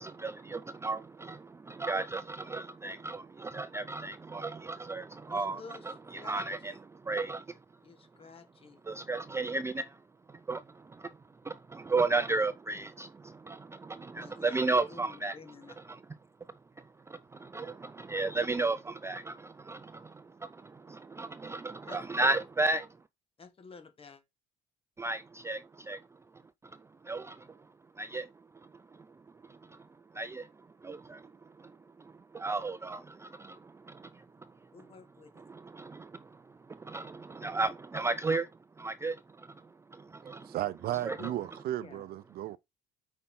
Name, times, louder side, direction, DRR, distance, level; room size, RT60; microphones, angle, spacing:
voice 1, 0.0-5.6 5.9-7.6 8.9-10.0 10.3-11.1 11.4-15.3 17.1-22.9 25.0-26.0 27.0-27.5 28.0-28.3 29.4-29.9 30.1-30.5 30.8-31.3 31.6-34.5 35.5-36.4 36.7-38.5 38.8-39.6 39.9-40.5 41.0-41.2, right 3 dB, 15° right, 0.4 m, -34 dB
voice 2, 5.3-6.8 7.8-8.8 14.2-15.7 21.9-22.4 23.4-24.2 34.7-35.4 41.2-41.4 41.8-42.0, left 4 dB, 35° left, 1.7 m, -51 dB
voice 3, 40.2-42.6, right 13 dB, 65° right, 0.5 m, -35 dB
8.5 x 5.4 x 3.7 m
cardioid pair, 110°, 17 cm